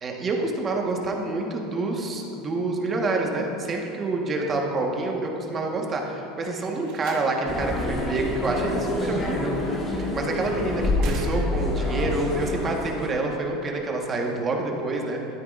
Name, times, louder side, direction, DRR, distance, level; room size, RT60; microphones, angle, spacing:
voice 1, 0.0-15.4, right 2 dB, 30° right, 1 dB, 1.4 m, -27 dB
Slam, 6.6-7.7 9.2-9.6 11.0-11.9, right 4 dB, 60° right, 1.4 m, -40 dB
sound 1, 7.5-13.1, left 2 dB, 30° left, 1.9 m, -27 dB
12.5 x 9.1 x 2.5 m, 2.9 s
hypercardioid pair, 100°, 0 cm